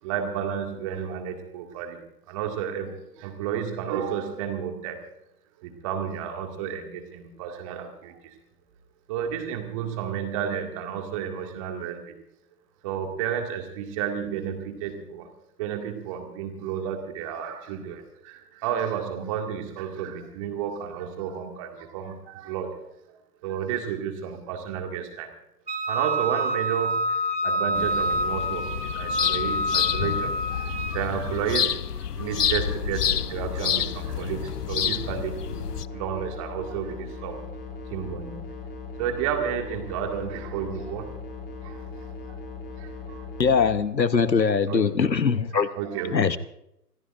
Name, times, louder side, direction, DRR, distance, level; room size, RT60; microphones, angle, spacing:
voice 1, 0.0-2.0 2.3-5.0 5.6-8.4 9.1-12.1 12.8-15.3 15.6-25.3 25.9-37.4 37.9-38.6 39.0-41.2 41.6-42.4 42.8-43.2 44.7-44.9 45.5-46.4, right 8 dB, 20° right, 4 dB, 2.0 m, -32 dB
Wind instrument woodwind instrument, 25.7-31.0, equal, 70° right, 3.0 m, -27 dB
sound 1, 27.7-35.9, left 8 dB, 65° left, 0.7 m, -29 dB
sound 2, 32.2-43.8, left 4 dB, 35° left, 3.2 m, -39 dB
voice 2, 43.4-45.7 46.1-46.4, left 5 dB, 80° left, 13 dB, 1.2 m, -22 dB
26.0 x 18.0 x 2.5 m, 0.78 s
figure-of-eight pair, 140°, 50 cm